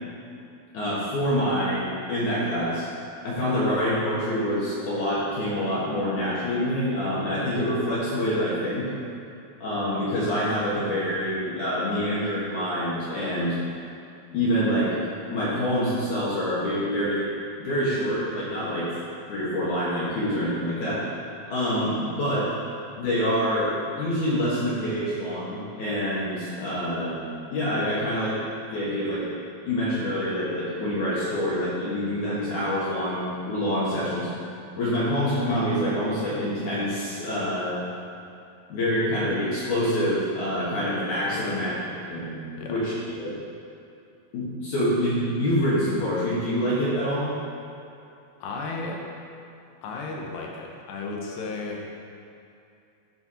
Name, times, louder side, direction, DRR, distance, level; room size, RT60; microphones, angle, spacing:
voice 1, 0.7-2.9 3.2-8.9 9.6-13.6 14.3-14.9 15.3-17.2 17.6-18.9 19.3-21.1 21.5-22.5 23.0-27.1 27.5-28.3 28.7-29.2 29.7-34.3 34.8-37.8 38.7-41.7 42.1-42.3 42.7-42.9 43.2-43.4 44.3-47.3, equal, 60° left, -9 dB, 2.4 m, -26 dB
voice 2, 41.3-41.6 42.6-42.9 48.4-49.1 49.8-52.0, left 3 dB, 85° left, -1 dB, 3.1 m, -34 dB
12.0 x 4.5 x 4.3 m, 2.6 s
omnidirectional pair, 4.8 m